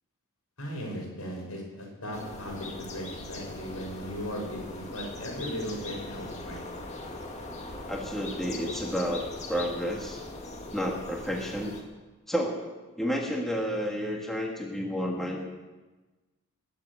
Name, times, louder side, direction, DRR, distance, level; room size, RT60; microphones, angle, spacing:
voice 1, 0.6-6.6, equal, 75° left, 0 dB, 6.1 m, -37 dB
sound 1, 2.1-11.8, left 2 dB, 30° left, 2.1 m, -40 dB
voice 2, 7.9-10.2 10.7-11.7 12.3-15.4, equal, ahead, -1 dB, 1.8 m, -31 dB
21.0 x 7.9 x 8.6 m, 1.2 s
head